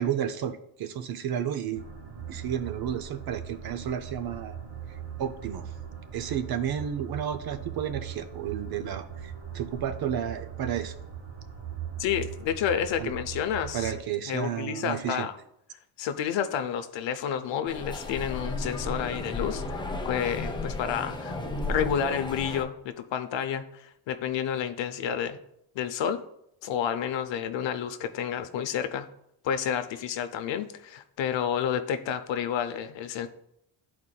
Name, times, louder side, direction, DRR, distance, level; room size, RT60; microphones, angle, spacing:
voice 1, 0.0-1.8 2.3-4.6 5.2-5.7 6.1-10.9 13.0-13.2 13.7-15.3, right 9 dB, 50° right, 9 dB, 0.5 m, -32 dB
sound 1, 1.7-14.0, right 8 dB, 80° right, 1.4 m, -40 dB
voice 2, 12.0-13.9 14.3-15.3 16.0-21.4 21.7-25.4 25.7-26.2 26.6-29.1 29.4-33.3, left 8 dB, 65° left, 9 dB, 0.6 m, -30 dB
sound 2, 17.7-22.6, left 2 dB, 10° left, 0.5 m, -33 dB
10.5 x 4.3 x 2.3 m, 0.77 s
cardioid pair, 110°, 50 cm